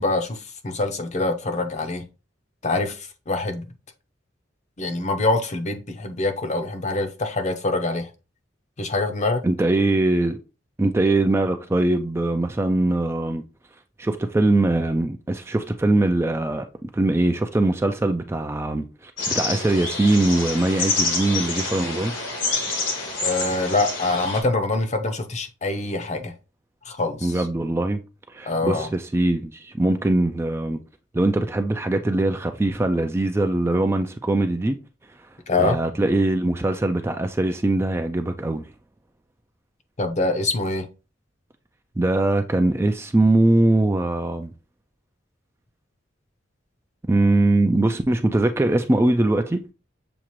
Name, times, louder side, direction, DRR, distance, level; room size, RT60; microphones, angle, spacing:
voice 1, 0.0-2.0 2.6-3.0 3.3-3.7 4.8-8.1 8.8-9.4 23.2-26.3 26.9-27.4 28.5-28.9 35.5-35.8 40.0-40.9, left 2 dB, 40° left, 0.7 m, -24 dB
voice 2, 9.4-10.4 10.8-13.4 14.0-22.1 27.2-28.0 28.3-30.8 31.1-34.8 35.6-38.6 42.0-44.5 47.1-49.6, right 2 dB, 15° right, 0.3 m, -21 dB
sound 1, 19.2-24.4, left 3 dB, 80° left, 1.6 m, -27 dB
7.0 x 2.5 x 3.0 m
head